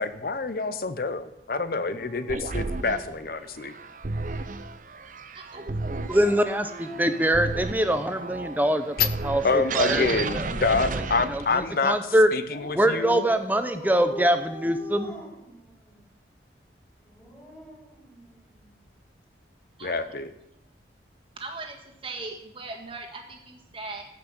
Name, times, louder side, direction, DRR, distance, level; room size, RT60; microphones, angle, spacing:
voice 1, 0.0-3.7 9.0-9.1 9.4-13.3 19.8-20.3, left 4 dB, 50° left, 12 dB, 0.8 m, -27 dB
Dog, 1.7-3.6 6.0-8.4 9.7-11.3 12.5-16.0 17.0-18.7 19.9-20.1, equal, 10° left, 3.1 m, -44 dB
sound 1, 2.3-11.7, right 3 dB, 45° right, 0.7 m, -33 dB
voice 2, 5.3-6.2 19.8-20.1 21.4-21.8 22.0-24.0, right 3 dB, 30° right, 2 dB, 1.8 m, -39 dB
voice 3, 6.1-9.0 9.2-10.1 10.3-10.7 11.3-12.3 12.7-15.1, equal, 10° right, 9 dB, 0.7 m, -24 dB
14.5 x 6.0 x 8.1 m, 0.84 s
head